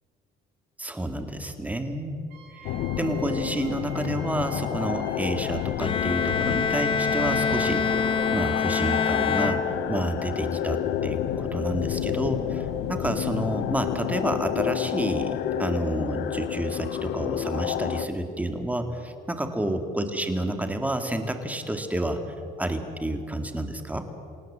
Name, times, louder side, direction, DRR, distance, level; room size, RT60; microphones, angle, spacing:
voice 1, 0.8-2.3 2.6-8.0 8.3-22.2 22.6-24.1, right 1 dB, 10° right, 6 dB, 2.3 m, -30 dB
Wind instrument woodwind instrument, 2.3-6.4, right 8 dB, 75° right, 7.8 m, -47 dB
sound 1, 2.6-18.1, left 10 dB, 80° left, 1.1 m, -29 dB
Bowed string instrument, 5.8-10.2, left 5 dB, 30° left, 1.2 m, -26 dB
27.5 x 17.5 x 7.7 m, 2.7 s
cardioid pair, 110°, 17 cm